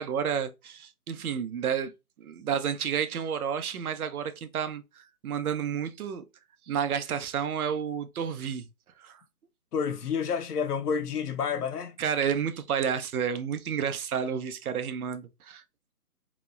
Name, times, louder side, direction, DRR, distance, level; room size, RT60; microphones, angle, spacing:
voice 1, 0.0-1.9 2.2-6.2 6.7-8.7 9.0-9.2 12.0-15.6, right 7 dB, 70° right, 0.6 m, -30 dB
voice 2, 9.7-12.0, left 6 dB, 85° left, 0.6 m, -29 dB
2.8 x 2.0 x 2.2 m
hypercardioid pair, 165°, 45 cm